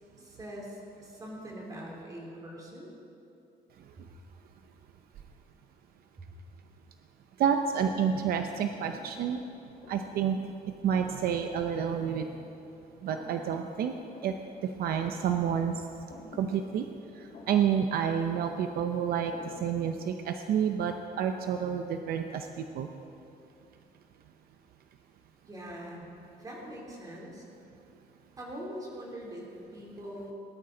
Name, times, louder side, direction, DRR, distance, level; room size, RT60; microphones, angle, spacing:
voice 1, 0.2-2.9 25.5-26.1 26.4-27.4 28.4-29.5 29.7-30.3, equal, 20° right, -3 dB, 3.0 m, -42 dB
voice 2, 7.4-9.4 9.9-10.4 10.8-12.3 13.0-13.9 14.2-14.3 14.6-15.8 16.4-16.9 17.5-22.5 22.7-22.9, right 8 dB, 70° right, 6 dB, 0.7 m, -29 dB
Thump thud, 7.7-12.7 13.0-13.6 13.9-20.0, left 2 dB, 80° left, 2.9 m, -50 dB
19.0 x 12.5 x 3.8 m, 2.7 s
cardioid pair, 155°, 16 cm